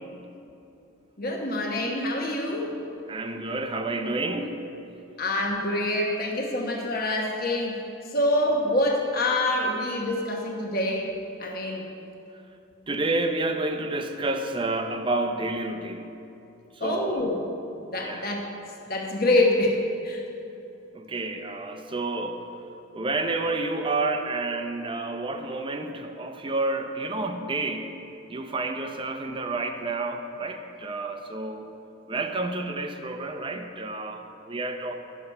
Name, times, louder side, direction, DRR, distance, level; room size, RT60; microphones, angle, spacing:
voice 1, 1.2-2.7 5.2-7.8 8.1-11.9 16.8-17.5 17.8-18.5 18.9-19.8 20.0-20.2, left 1 dB, 45° left, 0 dB, 1.1 m, -26 dB
voice 2, 3.1-4.6 12.9-16.1 16.8-17.2 18.0-18.3 20.9-22.5 22.9-28.0 28.3-31.7 32.1-35.0, right 2 dB, 25° right, 6 dB, 0.6 m, -30 dB
10.5 x 7.0 x 5.4 m, 2.8 s
head